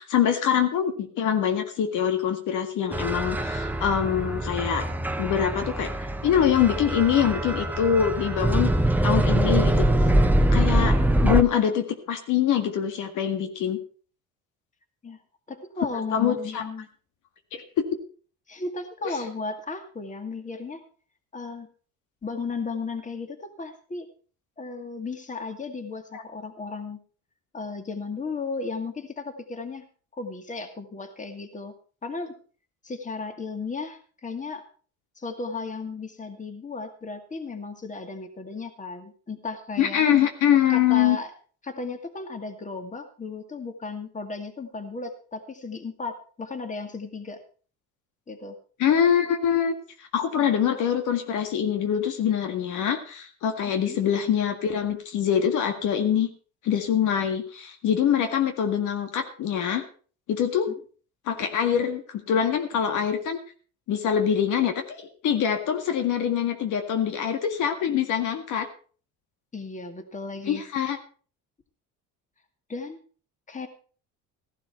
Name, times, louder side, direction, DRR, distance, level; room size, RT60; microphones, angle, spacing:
voice 1, 0.0-4.9 5.2-9.9 10.5-11.0 11.2-13.8 16.1-16.6 17.5-17.8 19.0-19.1 26.1-26.2 39.8-41.2 48.8-49.7 50.0-56.3 56.6-59.8 60.3-60.7 61.3-63.4 63.9-68.7 70.5-71.0, left 9 dB, 65° left, 6 dB, 1.9 m, -24 dB
sound 1, 2.9-11.4, right 1 dB, 5° right, 1.1 m, -23 dB
voice 2, 15.5-16.9 18.5-20.8 21.3-21.7 22.2-24.1 24.6-27.0 27.5-29.9 30.2-31.8 32.0-32.3 32.8-34.6 35.2-40.0 40.7-41.3 41.6-47.4 48.3-48.6 53.7-54.0 69.5-70.6 72.7-73.0 73.5-73.7, left 4 dB, 25° left, 6 dB, 2.3 m, -35 dB
15.5 x 11.5 x 4.5 m, 0.41 s
cardioid pair, 105°, 33 cm